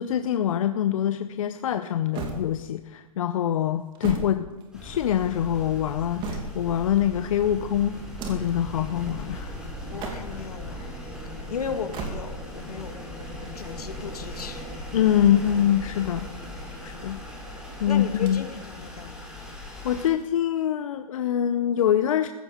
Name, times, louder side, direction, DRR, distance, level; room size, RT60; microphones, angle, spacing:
voice 1, 0.0-4.5 4.7-8.0 8.3-9.6 14.9-16.3 16.8-17.2 17.8-18.4 19.8-22.3, left 10 dB, 60° left, 9 dB, 0.8 m, -24 dB
sound 1, 2.1-3.0 3.7-5.1 5.8-6.8 8.0-8.7 9.8-10.5 11.7-12.6 14.1-15.1 16.0-16.9 18.1-18.7 19.0-19.1 20.1-20.9, right 3 dB, 25° right, 2.4 m, -38 dB
sound 2, 4.7-20.1, left 1 dB, 5° right, 4.1 m, -38 dB
voice 2, 9.9-14.8 16.7-16.8 17.8-19.3, left 6 dB, 85° left, 7 dB, 1.9 m, -36 dB
15.0 x 14.0 x 5.1 m, 1.1 s
hypercardioid pair, 140°, 19 cm